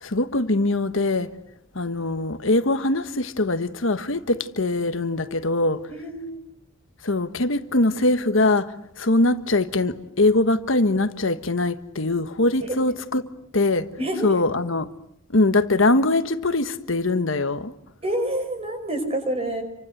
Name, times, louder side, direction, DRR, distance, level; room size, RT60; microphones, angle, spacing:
voice 1, 0.0-1.3 1.7-5.8 7.0-13.2 13.5-13.9 14.2-14.9 15.3-17.7, left 2 dB, 65° left, 1.4 m, -22 dB
voice 2, 5.9-6.4 12.6-12.8 14.0-14.4 18.0-19.6, right 1 dB, 30° right, 5.8 m, -27 dB
29.5 x 25.0 x 7.9 m
head